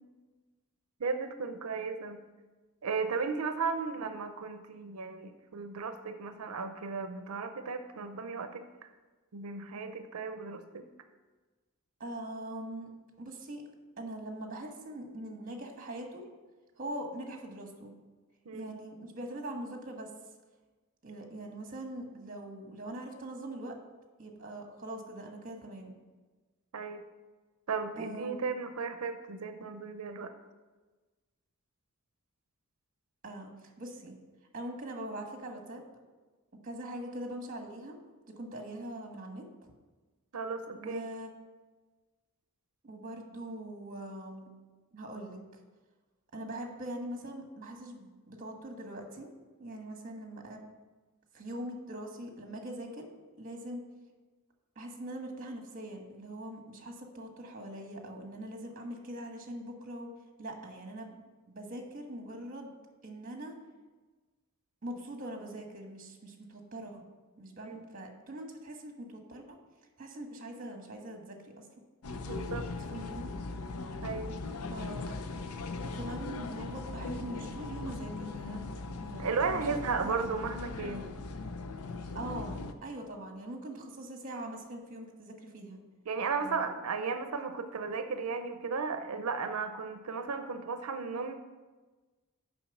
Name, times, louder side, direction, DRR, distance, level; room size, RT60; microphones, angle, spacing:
voice 1, 1.0-2.2 2.8-8.9 9.3-10.9 18.5-18.8 26.7-27.0 27.7-30.3 40.3-41.0 67.6-67.8 72.2-72.7 74.0-74.4 79.2-81.2 86.1-91.3, right 4 dB, 85° right, 8 dB, 0.6 m, -35 dB
voice 2, 12.0-12.9 13.2-13.6 14.0-16.2 16.8-17.9 18.5-20.1 21.0-23.8 24.2-25.9 28.0-28.4 33.2-33.5 33.8-34.1 34.5-35.8 36.6-38.0 38.3-39.4 40.7-41.3 42.8-44.5 44.9-45.6 46.3-49.3 49.6-50.7 51.3-53.1 53.3-53.8 54.7-60.1 60.4-61.2 61.5-62.7 63.0-63.5 64.8-67.0 67.4-69.6 70.0-71.7 72.9-73.3 74.7-75.2 75.8-78.7 79.0-80.3 82.1-85.8 86.4-86.7, right 1 dB, 40° right, 3 dB, 1.4 m, -42 dB
sound 1, 72.0-82.7, left 3 dB, 85° left, 0.6 m, -39 dB
7.2 x 5.5 x 7.0 m, 1.3 s
head